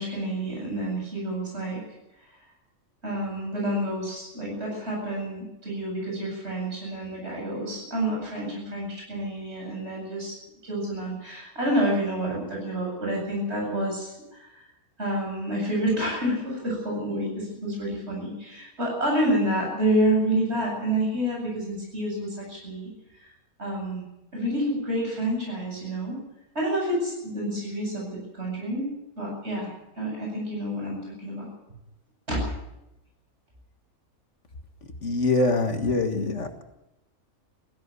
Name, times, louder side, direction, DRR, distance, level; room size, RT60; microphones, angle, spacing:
voice 1, 0.0-1.8 3.0-10.3 10.6-14.5 15.0-22.9 23.2-23.3 23.6-24.0 24.3-26.2 26.5-29.7 30.0-31.5 32.3-32.4, right 1 dB, 45° right, -2 dB, 8.5 m, -28 dB
voice 2, 35.0-36.6, left 2 dB, 55° left, 6 dB, 2.0 m, -24 dB
17.0 x 16.0 x 9.7 m, 0.90 s
omnidirectional pair, 1.5 m